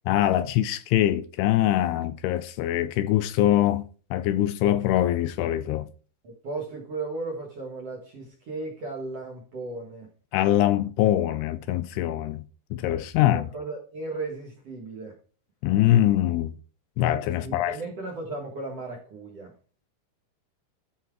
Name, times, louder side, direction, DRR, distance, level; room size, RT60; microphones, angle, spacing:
voice 1, 0.1-3.9 4.1-5.9 10.3-12.4 12.7-13.5 15.6-16.6 17.0-17.8, left 13 dB, 80° left, 2.4 m, -23 dB
voice 2, 6.2-10.1 13.3-15.2 17.4-19.5, right 3 dB, 55° right, 1.8 m, -36 dB
13.0 x 4.7 x 4.6 m
omnidirectional pair, 4.9 m